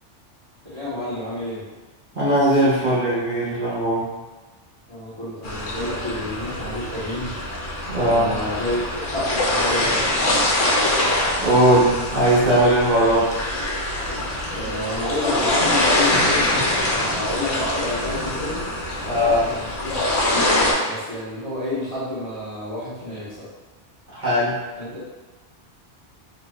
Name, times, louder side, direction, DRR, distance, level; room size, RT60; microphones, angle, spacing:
voice 1, 0.7-1.6 4.9-7.4 8.0-10.2 14.5-18.7 19.0-20.4 20.8-23.5 24.8-25.0, left 1 dB, 25° left, -11 dB, 1.3 m, -29 dB
voice 2, 2.1-4.0 7.9-8.3 11.1-13.3 19.0-19.5 24.1-24.6, right 1 dB, 40° right, -10 dB, 1.2 m, -19 dB
sound 1, 5.4-20.7, left 1 dB, 80° left, 1.2 m, -24 dB
4.7 x 3.1 x 2.4 m, 1.2 s
omnidirectional pair, 1.2 m